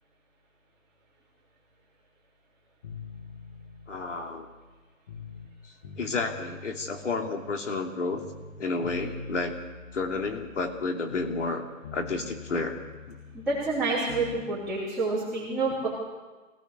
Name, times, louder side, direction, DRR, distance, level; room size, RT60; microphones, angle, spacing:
sound 1, 2.8-5.5 5.8-11.6 11.8-14.5, left 3 dB, 20° left, 1.6 m, -44 dB
voice 1, 3.9-4.5 5.6-8.2 8.6-9.6 9.9-11.6 11.9-12.8 13.1-13.2, left 3 dB, 60° left, 3 dB, 3.1 m, -31 dB
voice 2, 13.3-15.9, right 3 dB, ahead, -14 dB, 3.5 m, -28 dB
25.0 x 18.0 x 6.8 m, 1.3 s
hypercardioid pair, 175°, 42 cm